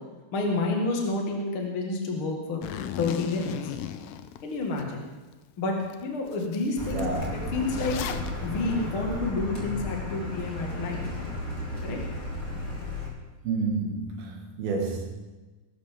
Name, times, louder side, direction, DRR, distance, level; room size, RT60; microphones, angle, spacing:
voice 1, 0.3-2.7 3.0-3.7 4.4-5.0 5.6-5.7 6.0-7.1 7.3-8.0 8.4-11.0 11.8-12.0 12.5-12.7, left 3 dB, 40° left, 2.2 m, -29 dB
Zipper (clothing), 2.6-4.8 5.3-5.4 5.9-6.0 6.3-8.3, left 10 dB, 85° left, 1.9 m, -36 dB
Car, 6.8-13.1, left 1 dB, 25° left, 2.5 m, -34 dB
voice 2, 6.9-7.5 13.4-15.1, right 4 dB, 65° right, 3.6 m, -30 dB
20.5 x 12.0 x 3.8 m
omnidirectional pair, 4.8 m